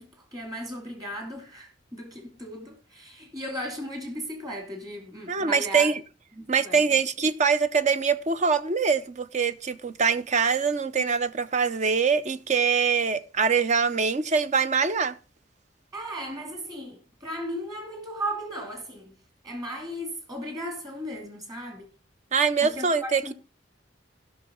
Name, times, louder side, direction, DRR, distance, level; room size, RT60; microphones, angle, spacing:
voice 1, 0.0-5.9 6.3-7.0 15.9-19.2 19.4-21.9 22.6-23.3, equal, 20° right, 2.6 m, -36 dB
voice 2, 5.3-6.0 6.5-15.2 22.3-23.3, right 5 dB, 40° right, 0.6 m, -24 dB
16.5 x 6.2 x 3.7 m
head